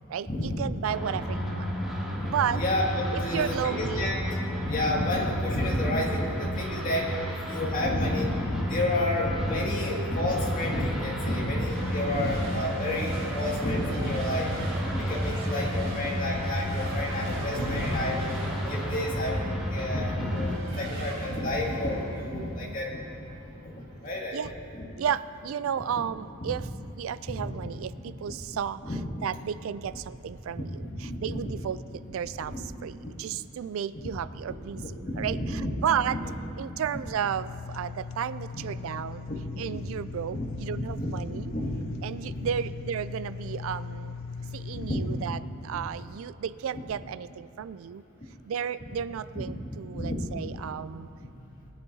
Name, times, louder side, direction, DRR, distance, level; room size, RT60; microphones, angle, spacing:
voice 1, 0.1-1.7 2.3-2.6 3.1-4.1 15.3-15.4 22.3-22.8 24.3-24.5 25.0-26.7 27.0-31.8 32.1-34.8 35.2-36.2 36.6-39.3 39.6-41.5 42.0-44.2 44.5-48.0 48.5-51.1, right 8 dB, 70° right, 15 dB, 0.3 m, -33 dB
sound 1, 0.9-20.6, equal, ahead, 1.8 m, -32 dB
voice 2, 2.2-4.2 4.6-7.1 7.5-23.0 23.6-24.4 24.7-24.9 26.4-26.5 27.3-27.5 28.3-28.4 28.8-29.0 30.6-31.4 32.4-33.1 33.9-34.0 34.7-35.7 36.1-36.2 38.5-38.6 39.3-39.4 39.7-39.8 40.3-40.4 40.7-41.2 41.5-41.7 42.3-42.5 44.7-45.0 49.3-49.4 49.9-50.3, left 1 dB, 40° left, -3 dB, 2.3 m, -30 dB
Race car auto racing / Accelerating revving vroom / Mechanisms, 11.7-24.2, right 1 dB, 50° right, 2.6 m, -41 dB
sound 2, 37.3-45.4, left 5 dB, 70° left, 0.4 m, -39 dB
21.0 x 12.0 x 2.8 m, 2.8 s
head